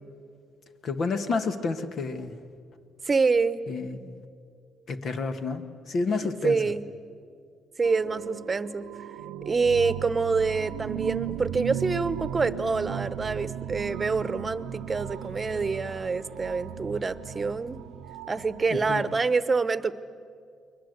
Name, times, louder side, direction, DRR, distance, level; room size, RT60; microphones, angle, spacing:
voice 1, 0.8-2.4 3.7-4.3 4.9-6.6 18.7-19.1, left 4 dB, 55° left, 8 dB, 1.8 m, -30 dB
voice 2, 3.0-3.6 6.2-6.8 7.8-8.9 9.4-17.8 18.3-19.9, right 4 dB, 30° right, 14 dB, 1.0 m, -26 dB
sound 1, 7.8-19.2, right 12 dB, 90° right, 0.6 m, -37 dB
sound 2, 11.3-18.0, equal, 75° left, 7.6 m, -56 dB
29.5 x 21.5 x 8.1 m, 2.3 s
cardioid pair, 80°, 0 cm